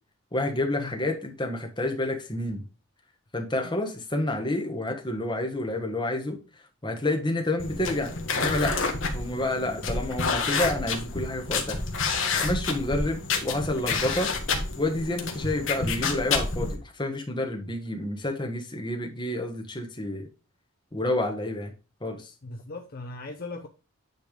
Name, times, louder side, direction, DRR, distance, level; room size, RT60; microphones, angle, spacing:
voice 1, 0.3-2.6 3.3-6.4 6.8-8.8 9.1-11.8 12.4-14.3 14.8-20.3 20.9-21.7 22.0-22.3, left 1 dB, 20° left, 1.3 m, -29 dB
sound 1, 7.6-16.7, left 4 dB, 55° left, 1.4 m, -29 dB
voice 2, 12.7-13.1 22.4-23.7, left 3 dB, 40° left, 0.6 m, -39 dB
9.2 x 3.4 x 5.0 m
head